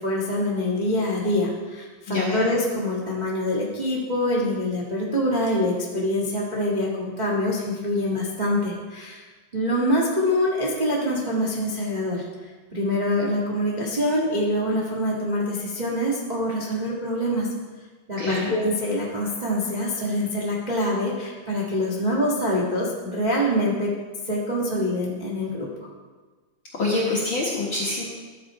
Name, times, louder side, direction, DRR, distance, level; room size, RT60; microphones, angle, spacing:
voice 1, 0.0-9.2 9.5-12.2 12.7-17.5 18.1-23.9 24.2-25.9, left 1 dB, 85° right, -4 dB, 0.4 m, -25 dB
voice 2, 2.1-2.5 18.2-18.5 26.8-28.0, left 2 dB, 50° left, -5 dB, 1.7 m, -25 dB
13.0 x 6.7 x 4.8 m, 1.3 s
omnidirectional pair, 3.9 m